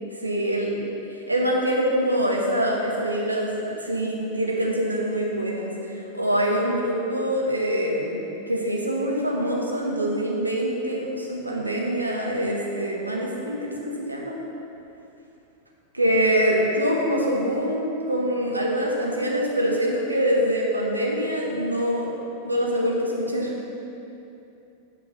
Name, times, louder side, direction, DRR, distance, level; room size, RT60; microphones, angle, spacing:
voice 1, 0.2-0.8 1.3-8.2 8.5-14.4 15.9-22.1 22.4-23.5, equal, 85° right, -2 dB, 1.1 m, -24 dB
8.3 x 4.5 x 4.9 m, 2.8 s
figure-of-eight pair, 90°, 0 cm